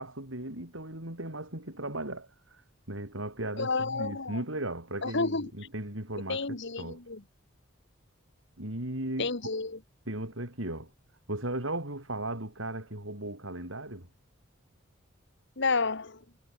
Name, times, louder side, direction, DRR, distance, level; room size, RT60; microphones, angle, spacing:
voice 1, 0.0-2.6 2.9-7.0 8.6-9.3 10.1-10.9 11.3-14.1, right 1 dB, 75° right, 6.3 m, -36 dB
voice 2, 3.6-4.4 5.0-5.5 6.3-7.2 9.2-9.8 15.6-16.2, left 4 dB, 65° left, 1.7 m, -30 dB
head